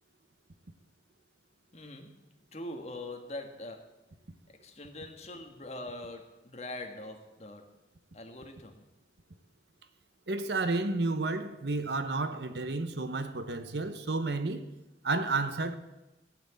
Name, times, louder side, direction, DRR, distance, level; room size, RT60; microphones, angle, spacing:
voice 1, 1.7-2.1 2.5-3.9 4.6-7.6 8.1-8.8, left 1 dB, 35° left, 1.6 m, -42 dB
voice 2, 10.3-14.7 15.0-15.8, right 3 dB, 65° right, 0.9 m, -31 dB
16.0 x 6.0 x 8.4 m
head